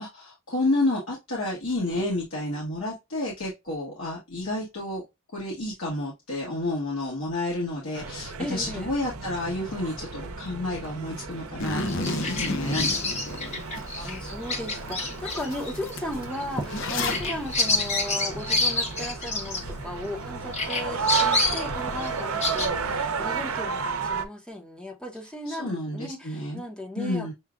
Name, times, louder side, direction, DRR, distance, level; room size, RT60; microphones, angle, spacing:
voice 1, 0.0-5.0 5.3-14.2 25.4-26.6 27.0-27.3, left 2 dB, 80° left, 1.5 m, -30 dB
sound 1, 7.9-24.3, right 5 dB, 90° right, 0.7 m, -33 dB
voice 2, 8.4-8.9 14.0-27.3, left 1 dB, 5° left, 0.8 m, -36 dB
Zipper (clothing), 11.6-13.8 14.3-14.4 14.9-15.0 15.2-17.3, left 2 dB, 60° left, 0.7 m, -31 dB
Bird vocalization bird call bird song, 11.8-20.2 20.5-22.7, left 3 dB, 30° left, 0.8 m, -29 dB
6.9 x 2.4 x 2.4 m
head